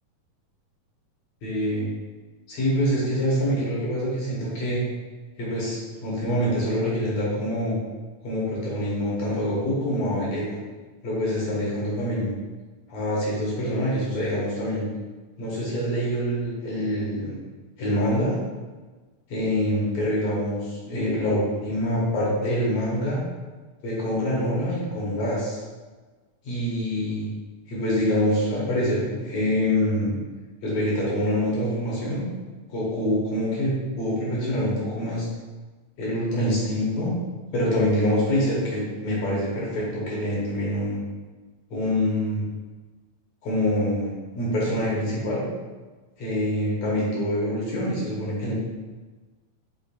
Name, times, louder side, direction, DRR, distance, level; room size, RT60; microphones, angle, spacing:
voice 1, 1.4-1.9 2.5-4.8 5.4-7.8 8.2-10.6 11.0-12.3 12.9-14.9 15.4-17.4 17.8-18.4 19.3-23.2 23.8-25.6 26.4-27.3 27.7-30.2 30.6-32.2 32.7-35.3 36.0-37.1 37.5-41.0 41.7-42.4 43.4-45.4 46.2-48.5, equal, 65° left, -5 dB, 2.1 m, -25 dB
5.4 x 3.7 x 2.5 m, 1.3 s
omnidirectional pair, 3.4 m